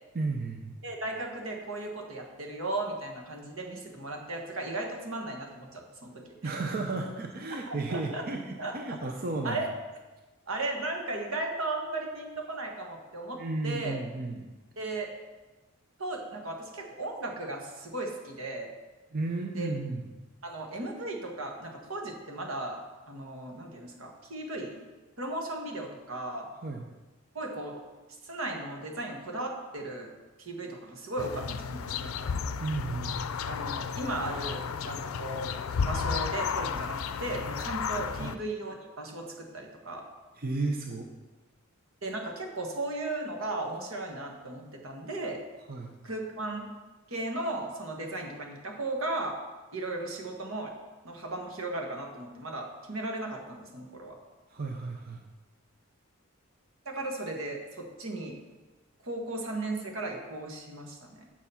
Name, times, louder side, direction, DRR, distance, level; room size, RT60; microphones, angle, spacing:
voice 1, 0.1-0.8 6.4-9.6 13.3-14.5 19.1-20.1 26.6-26.8 32.6-33.3 38.2-38.3 40.4-41.1 45.7-45.9 54.5-55.2, right 3 dB, 45° right, 2 dB, 0.7 m, -33 dB
voice 2, 0.8-6.5 7.9-8.2 8.6-8.7 9.4-9.7 10.5-14.0 14.8-15.1 16.0-18.7 19.5-19.7 20.4-22.8 23.1-24.8 25.2-26.5 27.3-27.8 28.2-30.1 30.4-32.1 33.5-35.5 35.9-40.0 42.0-45.4 46.0-46.7 47.1-49.4 49.7-50.7 51.0-54.2 56.8-58.3 59.0-61.3, right 2 dB, 80° right, 1 dB, 1.6 m, -36 dB
sound 1, 31.2-38.4, left 6 dB, 85° left, 0.4 m, -33 dB
7.2 x 6.8 x 5.7 m, 1.2 s
head